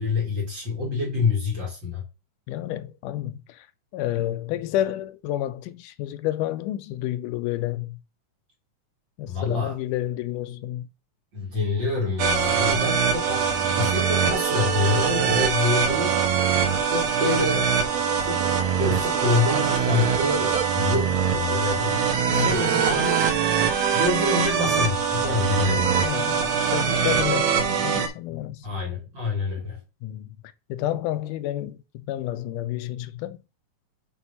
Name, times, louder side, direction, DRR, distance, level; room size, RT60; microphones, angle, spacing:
voice 1, 0.0-2.0 9.3-9.8 11.3-16.1 16.9-17.7 18.2-23.2 23.9-26.0 28.6-29.8, left 3 dB, 45° right, 1.9 m, -27 dB
voice 2, 2.5-3.7 3.9-8.0 9.2-10.9 15.8-15.9 22.3-22.7 26.0-28.7 30.0-30.4 30.7-33.4, left 13 dB, 80° left, 2.0 m, -30 dB
sound 1, 12.2-28.1, right 7 dB, 70° right, 1.8 m, -23 dB
6.3 x 3.0 x 5.4 m
omnidirectional pair, 3.7 m